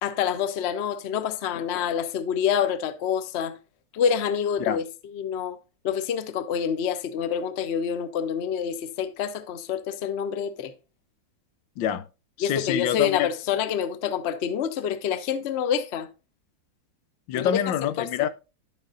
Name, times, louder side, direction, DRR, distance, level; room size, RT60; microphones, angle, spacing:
voice 1, 0.0-3.5 3.9-4.8 5.1-5.6 5.8-10.7 12.4-16.1 17.4-17.6 18.0-18.1, left 8 dB, 55° left, 0.7 m, -27 dB
voice 2, 11.8-12.1 12.4-13.3 17.3-18.3, left 10 dB, 90° left, 1.4 m, -25 dB
10.5 x 7.4 x 2.5 m
omnidirectional pair, 2.0 m